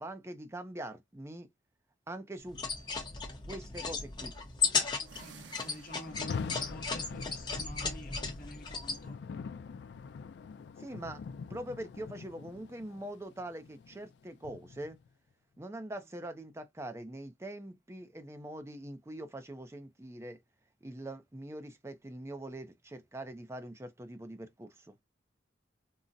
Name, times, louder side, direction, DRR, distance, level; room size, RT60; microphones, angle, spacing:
voice 1, 0.0-1.5 2.1-2.6 3.5-4.4 10.8-11.2 11.5-15.0 15.6-20.4 20.8-24.9, right 1 dB, 15° right, 0.4 m, -43 dB
sound 1, 2.5-9.0, left 5 dB, 25° left, 0.7 m, -35 dB
voice 2, 4.9-9.2, left 1 dB, 45° left, 1.0 m, -48 dB
sound 2, 4.9-6.6, right 5 dB, 75° right, 0.6 m, -54 dB
Rain, 6.0-15.1, left 5 dB, 65° left, 0.3 m, -44 dB
3.7 x 2.0 x 2.5 m
head